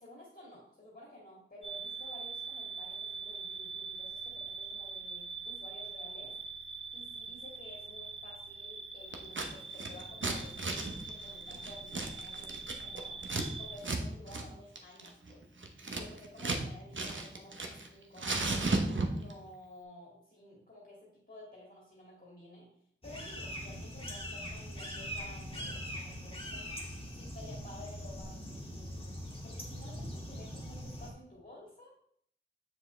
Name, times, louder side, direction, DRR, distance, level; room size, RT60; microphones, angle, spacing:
voice 1, 0.0-6.3 6.9-13.2 13.6-15.4 15.9-18.5 19.1-22.7 23.0-26.7 27.1-31.9, left 1 dB, 50° left, -4 dB, 2.4 m, -53 dB
sound 1, 1.6-13.8, right 4 dB, 30° right, 1.0 m, -43 dB
Scissors, 9.1-9.5 9.7-13.5 13.8-14.0 14.3-14.4 14.8-16.6 16.9-17.9 18.2-19.3, right 3 dB, 70° right, 1.0 m, -34 dB
sound 2, 23.0-31.1, equal, 30° left, 1.9 m, -42 dB
7.2 x 6.9 x 3.3 m, 0.67 s
wide cardioid pair, 45°, 21 cm